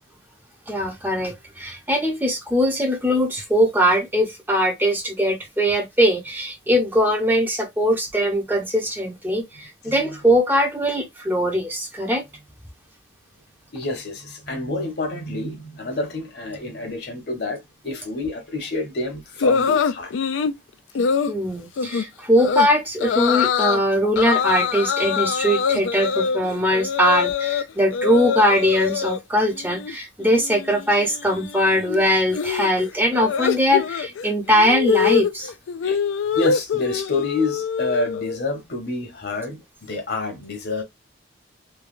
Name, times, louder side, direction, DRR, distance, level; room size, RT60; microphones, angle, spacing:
voice 1, 0.7-12.2 21.3-35.5, equal, 10° right, 0.6 m, -21 dB
voice 2, 13.7-20.1 35.8-36.0 36.3-40.8, left 2 dB, 55° left, 1.1 m, -28 dB
sound 1, 19.4-20.6 21.0-21.3 21.8-22.0 22.4-22.7 23.0-23.8 24.2-27.6 27.9-29.2 29.5-29.9 30.2-38.4, left 6 dB, 80° left, 0.4 m, -24 dB
3.3 x 2.2 x 2.4 m
head